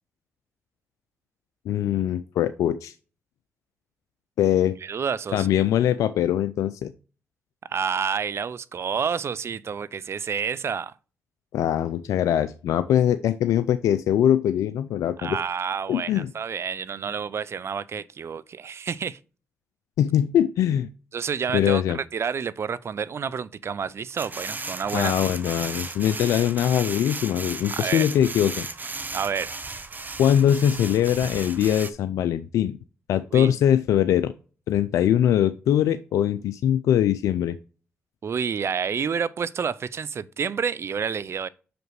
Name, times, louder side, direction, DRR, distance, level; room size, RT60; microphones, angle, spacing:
voice 1, 1.7-2.9 4.4-4.8 5.3-6.9 11.5-15.4 15.9-16.3 20.0-20.9 21.5-22.0 24.9-28.7 30.2-32.8 33.1-34.3 34.7-37.6, left 10 dB, 80° left, 0.4 m, -22 dB
voice 2, 4.8-5.5 7.7-10.9 15.2-19.2 21.1-25.1 27.7-28.1 29.1-29.5 33.3-33.6 38.2-41.5, right 6 dB, 55° right, 0.5 m, -29 dB
sound 1, 24.2-31.9, right 3 dB, 35° right, 1.0 m, -35 dB
6.0 x 5.2 x 4.7 m
supercardioid pair, 50°, 5 cm